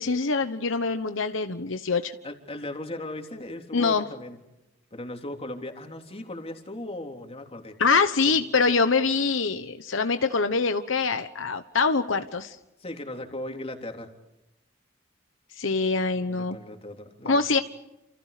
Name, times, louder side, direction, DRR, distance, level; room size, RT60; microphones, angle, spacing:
voice 1, 0.0-2.2 3.7-4.1 7.8-12.6 15.6-16.6 17.2-17.6, left 4 dB, 70° left, 9 dB, 1.2 m, -24 dB
voice 2, 2.2-4.4 4.9-7.7 8.3-8.4 12.8-14.1 16.3-17.6, left 1 dB, 30° left, 4 dB, 3.5 m, -37 dB
29.5 x 28.5 x 5.1 m, 0.93 s
head